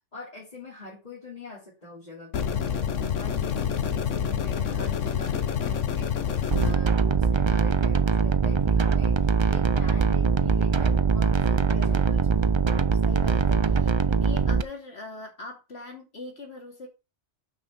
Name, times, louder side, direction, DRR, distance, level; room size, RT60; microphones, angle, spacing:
voice 1, 0.1-6.1 6.6-12.5, left 2 dB, 35° left, 3.4 m, -44 dB
sound 1, 2.3-6.7, left 8 dB, 80° left, 1.3 m, -27 dB
sound 2, 6.5-14.6, right 5 dB, 50° right, 0.3 m, -22 dB
voice 2, 11.7-12.1 13.0-16.9, left 3 dB, 55° left, 3.1 m, -41 dB
6.3 x 6.2 x 5.7 m
omnidirectional pair, 1.2 m